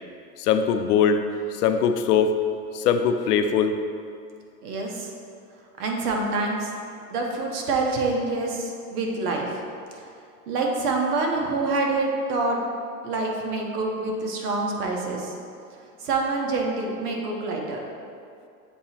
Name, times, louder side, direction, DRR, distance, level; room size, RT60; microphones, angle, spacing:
voice 1, 0.4-1.2 1.5-2.3 2.7-3.8, left 7 dB, 85° left, 8 dB, 0.6 m, -21 dB
voice 2, 4.6-5.1 5.8-6.7 7.1-9.6 9.9-10.1 10.5-12.6 13.0-15.4 16.0-17.8, right 3 dB, 80° right, 0 dB, 1.2 m, -26 dB
7.7 x 2.9 x 4.3 m, 2.4 s
supercardioid pair, 145°, 45 cm